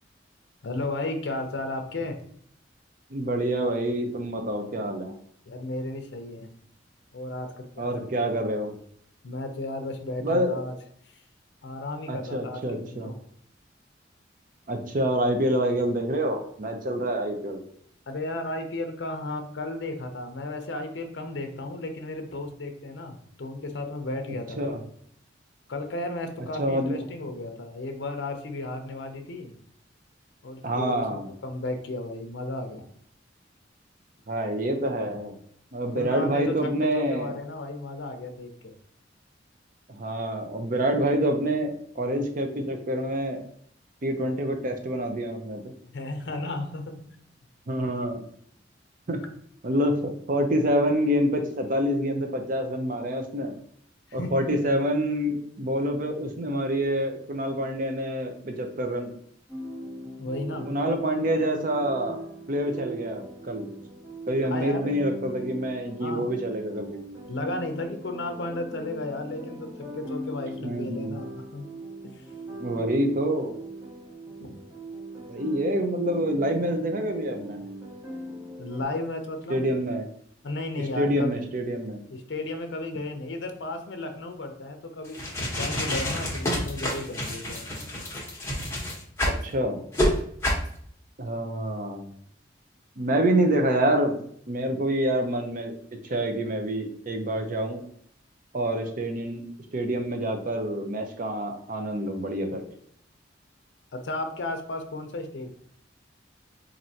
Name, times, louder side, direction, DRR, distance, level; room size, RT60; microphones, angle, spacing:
voice 1, 0.6-2.2 5.5-6.5 7.1-8.4 9.2-10.7 11.1-11.2 11.6-13.1 18.1-24.8 25.7-29.5 30.4-32.8 35.9-38.7 45.9-47.0 54.1-54.7 60.2-60.7 64.5-65.0 66.0-66.4 67.3-71.7 72.0-72.3 74.4-74.5 78.6-79.7 80.4-81.4 82.1-87.6 103.9-105.5, left 2 dB, 65° left, 6 dB, 0.6 m, -34 dB
voice 2, 3.1-5.1 7.8-8.7 10.2-10.6 12.1-13.1 14.7-17.6 24.6-24.8 26.6-27.0 30.6-31.3 34.3-35.4 35.7-37.3 39.9-43.4 44.0-45.7 47.7-48.2 49.1-49.2 49.6-53.5 54.1-59.1 60.6-62.2 62.5-63.7 64.3-67.0 70.6-71.1 72.6-73.5 75.3-77.6 79.5-80.1 81.0-82.0 89.4-89.8 91.2-92.1 93.0-94.2 94.5-95.7 96.0-97.8 98.5-99.4 99.7-102.6, right 1 dB, 45° right, 4 dB, 0.6 m, -27 dB
sound 1, 59.5-78.8, right 1 dB, 15° right, 0.9 m, -40 dB
sound 2, 85.0-89.4 89.9-90.1 90.4-90.7, equal, 15° left, 0.9 m, -28 dB
4.4 x 2.6 x 2.7 m, 0.64 s
head